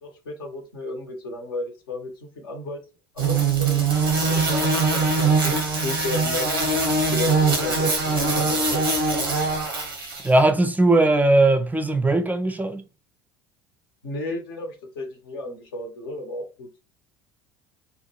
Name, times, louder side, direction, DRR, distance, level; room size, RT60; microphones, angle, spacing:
voice 1, 0.0-2.8 3.1-3.8 4.2-5.5 5.8-6.4 7.1-8.8 14.0-16.8, left 2 dB, 80° left, 0.9 m, -33 dB
sound 1, 3.2-10.3, right 4 dB, 90° right, 0.7 m, -22 dB
voice 2, 10.2-12.8, right 2 dB, 15° right, 0.4 m, -19 dB
2.8 x 2.2 x 2.8 m
hypercardioid pair, 65°, 12 cm